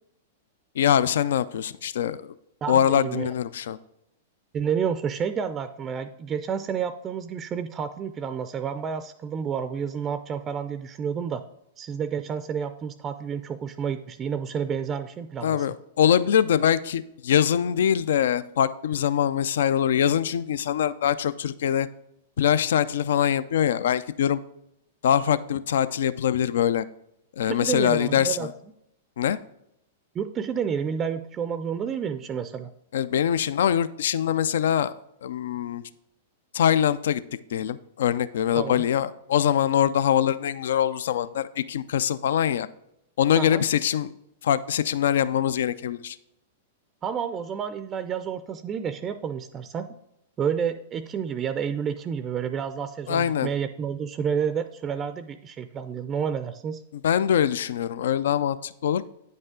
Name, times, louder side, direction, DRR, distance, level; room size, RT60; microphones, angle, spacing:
voice 1, 0.8-2.3 2.7-3.8 15.4-21.9 22.4-24.4 25.0-26.9 27.4-28.4 29.2-29.4 32.9-34.9 35.2-35.8 36.5-37.2 37.5-42.7 43.2-44.1 44.4-46.2 53.1-53.5 57.0-59.0, left 9 dB, 75° left, 16 dB, 0.3 m, -23 dB
voice 2, 2.6-3.4 4.5-11.4 11.8-15.7 27.5-28.5 30.1-32.7 38.6-38.8 43.4-43.6 47.0-49.9 50.4-56.8, right 7 dB, 25° right, 11 dB, 0.4 m, -30 dB
9.0 x 5.4 x 3.7 m, 0.81 s
hypercardioid pair, 120°, 0 cm